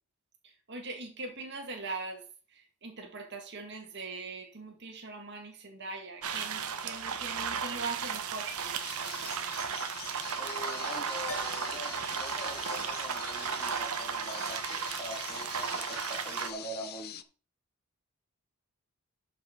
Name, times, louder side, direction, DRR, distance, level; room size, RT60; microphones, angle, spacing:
voice 1, 0.4-2.2 2.5-8.6, right 3 dB, 50° right, 2.0 m, -41 dB
sound 1, 6.2-16.5, right 6 dB, 85° right, 1.1 m, -35 dB
sound 2, 8.6-17.2, left 10 dB, 45° left, 0.6 m, -45 dB
voice 2, 10.4-17.2, equal, 15° left, 2.5 m, -44 dB
sound 3, 11.3-15.9, left 1 dB, 80° left, 1.5 m, -50 dB
12.5 x 5.7 x 3.9 m
head